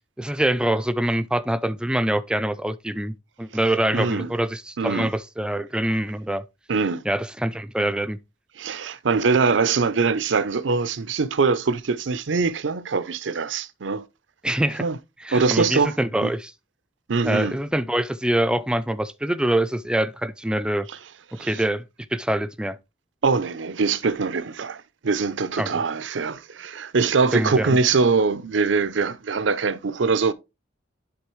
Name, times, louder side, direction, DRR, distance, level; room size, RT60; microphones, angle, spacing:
voice 1, 0.2-3.1 3.4-6.4 7.1-8.2 14.4-14.8 15.2-16.5 17.2-20.9 21.4-21.8 22.1-22.8 25.6-25.8 27.3-27.8, right 1 dB, 5° right, 0.4 m, -24 dB
voice 2, 3.9-4.3 4.8-5.1 6.7-7.0 8.6-14.0 14.8-15.0 15.3-16.0 16.2-16.3 17.1-17.6 21.4-21.6 23.2-30.3, right 4 dB, 80° right, 0.6 m, -23 dB
11.5 x 3.9 x 3.1 m
head